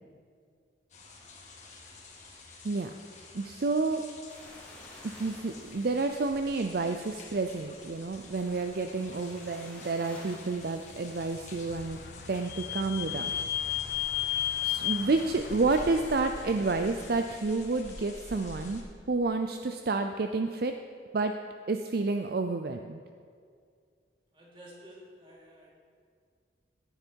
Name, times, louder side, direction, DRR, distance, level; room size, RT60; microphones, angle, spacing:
sound 1, 0.9-18.8, left 2 dB, 40° left, 2.2 m, -49 dB
voice 1, 3.3-4.0 5.2-12.0 12.3-13.3 14.6-18.8 19.1-20.8 21.1-21.3 21.7-23.0, right 3 dB, 55° right, 7 dB, 0.5 m, -30 dB
sound 2, 4.3-17.7, equal, 10° left, 2.7 m, -53 dB
Vehicle / Squeak, 11.1-16.7, left 11 dB, 55° left, 0.6 m, -34 dB
voice 2, 24.3-25.7, equal, 30° right, -5 dB, 3.2 m, -51 dB
15.0 x 10.5 x 4.6 m, 2.1 s
head